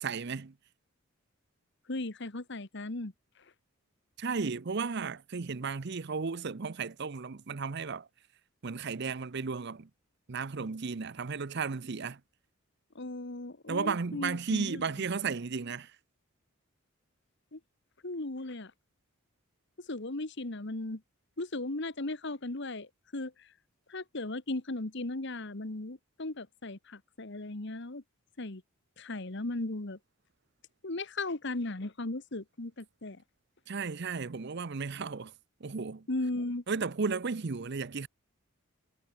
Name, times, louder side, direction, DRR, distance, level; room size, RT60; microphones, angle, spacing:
voice 1, 0.0-0.5 4.2-8.1 8.6-9.9 10.3-12.2 13.7-16.0 33.7-35.3 35.6-36.1 36.7-38.1, right 5 dB, 50° right, 0.6 m, -34 dB
voice 2, 1.9-3.1 12.9-14.8 17.5-17.6 18.0-18.7 19.8-21.0 21.4-23.5 23.9-28.0 28.4-28.6 29.0-30.0 30.8-33.2 36.1-36.6, left 2 dB, 55° left, 1.4 m, -37 dB
head